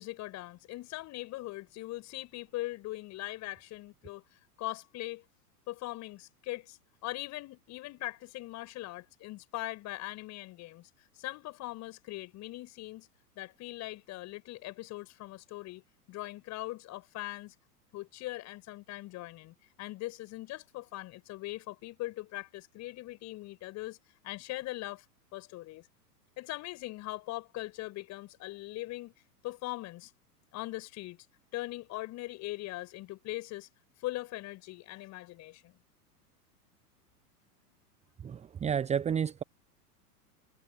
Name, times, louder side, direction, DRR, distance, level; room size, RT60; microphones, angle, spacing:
voice 1, 0.0-4.2 4.6-5.2 5.7-10.9 11.1-13.1 13.3-15.8 16.1-17.5 17.9-24.0 24.2-25.0 25.3-25.9 26.4-29.1 29.4-30.1 30.5-31.2 31.5-33.7 34.0-35.8, left 18 dB, 35° left, 6.6 m, -41 dB
voice 2, 38.2-39.4, right 8 dB, 15° right, 1.1 m, -31 dB
figure-of-eight pair, 95°, 46 cm